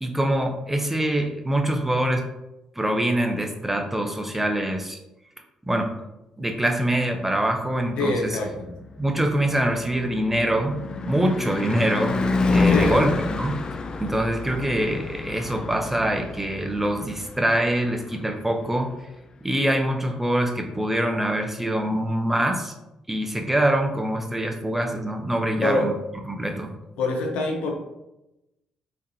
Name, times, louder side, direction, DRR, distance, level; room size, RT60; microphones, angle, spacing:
voice 1, 0.0-2.3 2.8-5.0 5.7-5.9 6.4-8.4 9.0-12.2 12.5-13.6 14.0-18.9 19.4-22.7 23.1-25.9 26.3-26.7, right 1 dB, 10° right, 4 dB, 0.7 m, -24 dB
voice 2, 8.0-8.7 12.7-13.1 25.6-25.9 27.0-27.7, left 2 dB, 70° left, 2 dB, 0.7 m, -25 dB
Car passing by / Truck / Engine, 8.4-18.7, left 3 dB, 40° left, 0.4 m, -28 dB
3.6 x 3.3 x 2.7 m, 0.92 s
hypercardioid pair, 45°, 2 cm